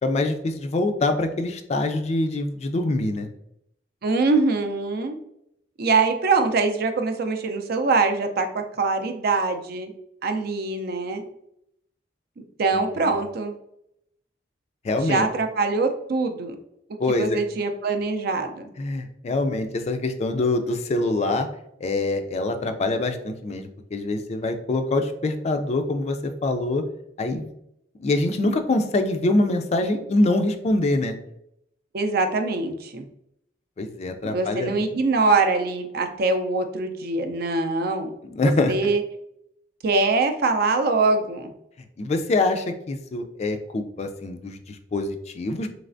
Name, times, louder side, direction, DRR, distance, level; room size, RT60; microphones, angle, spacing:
voice 1, 0.0-3.3 13.0-13.2 14.8-15.2 17.0-17.4 18.8-21.5 21.8-26.8 27.2-27.5 28.0-31.1 33.8-34.8 38.3-38.7 42.0-45.7, left 2 dB, 35° left, 7 dB, 0.3 m, -24 dB
voice 2, 4.0-5.2 5.8-9.9 10.2-11.3 12.6-13.5 15.0-16.5 17.1-18.7 31.9-33.0 34.2-38.1 38.4-39.0 39.8-41.5, right 3 dB, 60° right, 6 dB, 0.5 m, -23 dB
4.0 x 3.3 x 2.5 m, 0.76 s
head